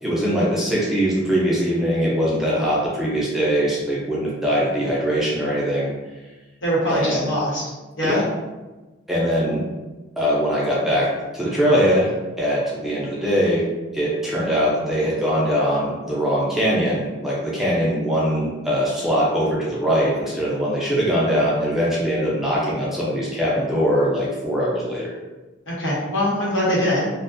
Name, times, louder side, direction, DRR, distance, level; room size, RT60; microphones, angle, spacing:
voice 1, 0.0-5.9 6.9-7.3 8.0-8.3 9.1-9.6 10.2-13.7 13.9-25.1, equal, ahead, -7 dB, 0.4 m, -22 dB
voice 2, 6.6-7.7 8.0-8.2 25.7-27.1, equal, 80° left, -7 dB, 1.0 m, -22 dB
2.4 x 2.2 x 2.5 m, 1.2 s
head